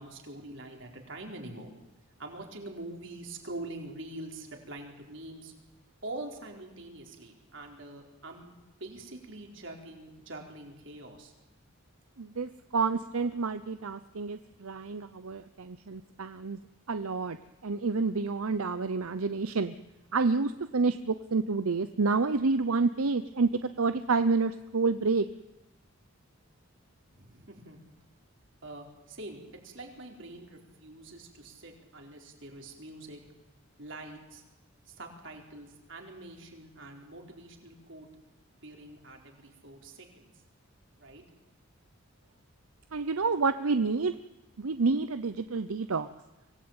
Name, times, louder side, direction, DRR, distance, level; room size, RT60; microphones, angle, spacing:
voice 1, 0.0-1.7 2.2-5.5 6.0-8.5 8.8-11.3 27.1-27.8 28.6-33.2 33.8-34.4 34.9-38.1 38.6-40.3 41.0-41.2, right 2 dB, 55° right, 2 dB, 4.4 m, -44 dB
voice 2, 12.2-16.6 16.9-17.4 17.6-19.7 20.1-25.3 42.9-44.1 44.6-46.1, right 4 dB, 80° right, 12 dB, 0.8 m, -29 dB
24.5 x 17.5 x 8.9 m, 1.0 s
head